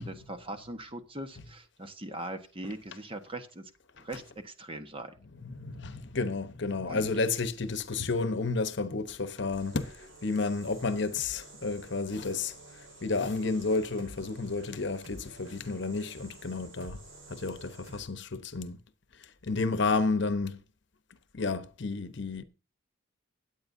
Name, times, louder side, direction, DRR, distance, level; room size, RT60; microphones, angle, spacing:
voice 1, 0.0-5.2 6.9-7.1, right 1 dB, 25° right, 1.3 m, -41 dB
voice 2, 5.5-12.5 13.0-17.0 17.3-18.8 19.4-20.6 21.3-22.4, left 3 dB, 60° left, 1.0 m, -31 dB
sound 1, 9.5-18.0, right 1 dB, 80° right, 5.4 m, -51 dB
23.0 x 8.8 x 2.7 m
head